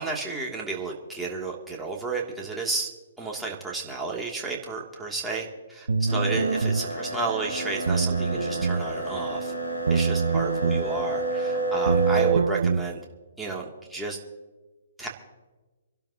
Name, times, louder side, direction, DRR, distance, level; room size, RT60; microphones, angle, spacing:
voice 1, 0.0-2.9 3.2-9.5 9.9-13.0 13.4-14.2 15.0-15.1, right 3 dB, 5° right, -3 dB, 2.8 m, -32 dB
sound 1, 5.9-6.9 7.9-8.9 9.9-10.9 11.9-12.8, right 4 dB, 70° right, 0.8 m, -24 dB
sound 2, 6.1-12.3, right 2 dB, 75° left, 4.1 m, -29 dB
27.5 x 12.0 x 3.0 m, 1.2 s
figure-of-eight pair, 125°, 0 cm